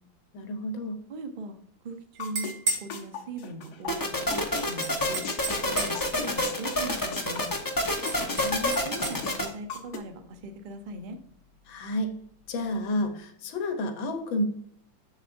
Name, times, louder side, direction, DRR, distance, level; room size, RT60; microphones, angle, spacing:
voice 1, 0.3-1.0 8.0-8.8 11.7-12.1 12.5-14.5, left 1 dB, 80° left, 7 dB, 1.7 m, -31 dB
voice 2, 1.1-1.5 1.8-2.5 2.8-4.4 4.7-5.2 5.7-7.4 8.8-11.2, right 2 dB, 85° right, 6 dB, 0.4 m, -39 dB
sound 1, 2.2-3.9 4.3-4.7 5.0-8.4 8.7-10.0, left 5 dB, 60° left, 1.4 m, -37 dB
sound 2, 2.2-2.9 4.8-6.1 8.1-9.2, right 3 dB, 55° right, 1.4 m, -33 dB
sound 3, 3.9-9.4, left 1 dB, 30° left, 0.3 m, -28 dB
7.2 x 7.1 x 2.6 m, 0.66 s
omnidirectional pair, 2.1 m